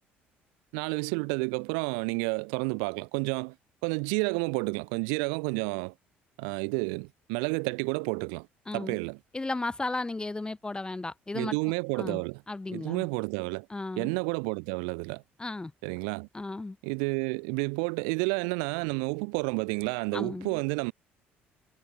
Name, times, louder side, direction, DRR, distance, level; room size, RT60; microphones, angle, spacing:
voice 1, 0.7-3.5 3.8-5.9 6.4-8.5 8.7-9.2 11.3-12.4 12.7-13.7 14.0-15.2 15.8-16.3 16.8-20.9, right 40 dB or more, 65° right, 0.3 m, -30 dB
voice 2, 8.7-9.0 9.3-11.6 12.0-12.2 12.5-13.1 13.7-14.1 15.4-15.7 16.3-16.8 20.1-20.6, left 2 dB, 15° left, 0.6 m, -34 dB
figure-of-eight pair, 55°, 6 cm